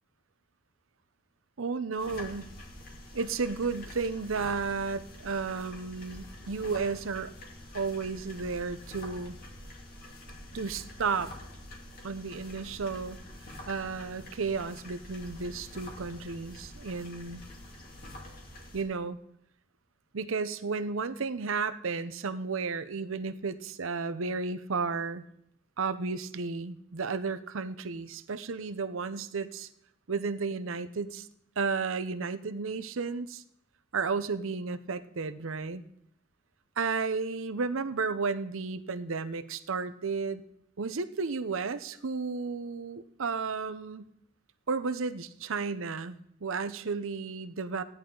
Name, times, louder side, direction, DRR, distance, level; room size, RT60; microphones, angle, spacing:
voice 1, 1.6-2.5 3.1-7.3 7.7-9.4 10.5-11.3 12.0-13.2 13.7-17.4 18.7-19.2 20.1-25.2 25.8-29.7 30.1-31.3 31.6-33.4 33.9-35.8 36.8-40.4 40.8-44.1 44.7-46.2 46.4-47.8, right 4 dB, 70° right, 13 dB, 0.7 m, -33 dB
sound 1, 2.0-18.8, left 1 dB, 45° left, 2.6 m, -46 dB
16.0 x 10.5 x 3.8 m, 0.74 s
head